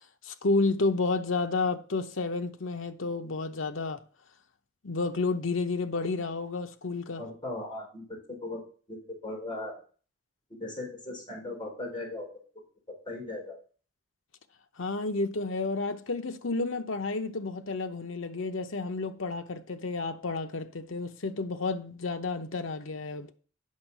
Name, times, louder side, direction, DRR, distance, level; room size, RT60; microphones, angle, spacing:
voice 1, 0.2-4.0 4.8-7.2 14.8-23.3, left 3 dB, 90° left, 0.8 m, -31 dB
voice 2, 7.2-8.6 8.9-9.7 10.6-12.3 13.1-13.5, left 2 dB, 25° left, 4.3 m, -38 dB
8.5 x 6.3 x 6.1 m
head